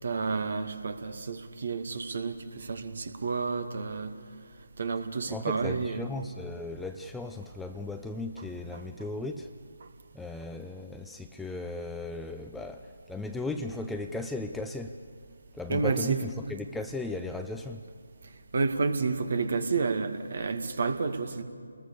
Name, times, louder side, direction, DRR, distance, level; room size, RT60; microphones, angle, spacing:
voice 1, 0.0-4.1 4.8-6.0 8.7-8.8 9.8-9.9 15.7-16.2 18.5-21.4, right 4 dB, 50° right, 8 dB, 2.1 m, -30 dB
voice 2, 5.3-9.5 10.1-12.8 13.1-14.9 15.5-17.8, left 2 dB, 5° left, 5 dB, 0.7 m, -36 dB
29.5 x 20.5 x 7.0 m, 2.1 s
figure-of-eight pair, 150°, 0 cm